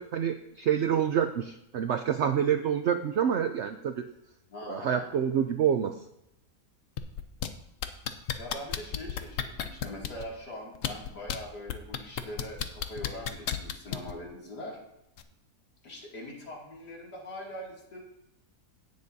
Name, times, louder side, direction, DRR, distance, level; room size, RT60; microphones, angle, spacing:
voice 1, 0.0-4.0 4.7-5.9, right 8 dB, 80° right, 8 dB, 0.6 m, -27 dB
voice 2, 4.5-5.1 8.4-14.8 15.8-18.0, left 1 dB, 85° left, -3 dB, 3.0 m, -42 dB
sound 1, 7.0-7.5 7.8-10.2 10.7-11.4 11.7-14.1 15.2-15.3, left 9 dB, 60° left, 0.9 m, -32 dB
17.0 x 6.8 x 2.7 m, 0.84 s
omnidirectional pair, 1.7 m